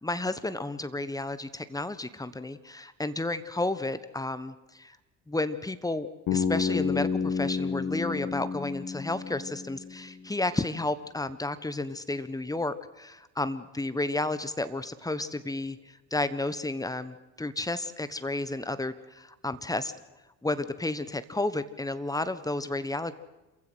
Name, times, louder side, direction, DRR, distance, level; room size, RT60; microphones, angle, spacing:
voice 1, 0.0-5.0 5.3-15.8 16.1-19.9 20.4-23.1, left 2 dB, 10° left, 13 dB, 1.3 m, -32 dB
Bass guitar, 6.3-10.3, left 5 dB, 50° left, 2.2 m, -30 dB
27.5 x 15.5 x 6.4 m, 1.1 s
figure-of-eight pair, 55°, 39 cm